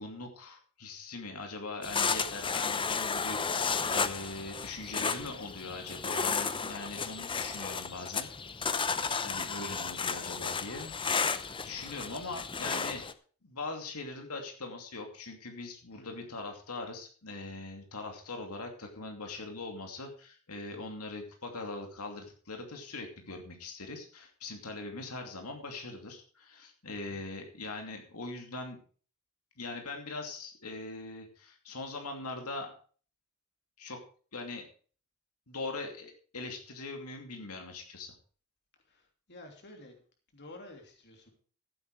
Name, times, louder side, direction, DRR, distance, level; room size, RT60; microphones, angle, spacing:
voice 1, 0.0-8.3 8.6-13.0 13.4-28.8 29.6-32.7 33.8-34.0 34.3-34.7 35.5-38.1, left 3 dB, 90° left, 3 dB, 2.6 m, -41 dB
sound 1, 1.8-13.1, left 5 dB, 25° left, 0.7 m, -33 dB
voice 2, 16.0-16.3 26.9-27.2 38.9-40.0 40.3-41.3, left 1 dB, 50° left, 3 dB, 3.0 m, -51 dB
14.5 x 8.4 x 4.8 m, 0.42 s
head